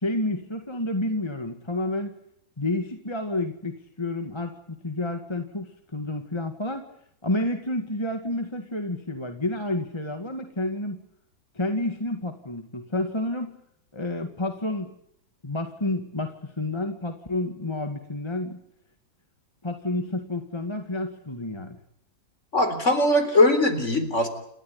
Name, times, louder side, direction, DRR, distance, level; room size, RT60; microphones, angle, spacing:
voice 1, 0.0-2.1 2.6-6.8 7.2-11.0 11.6-13.5 13.9-14.9 15.4-18.6 19.6-21.8, left 2 dB, 15° left, 6 dB, 2.0 m, -30 dB
voice 2, 22.5-24.3, left 2 dB, 40° left, 9 dB, 4.2 m, -20 dB
29.0 x 13.5 x 9.5 m, 0.71 s
omnidirectional pair, 1.9 m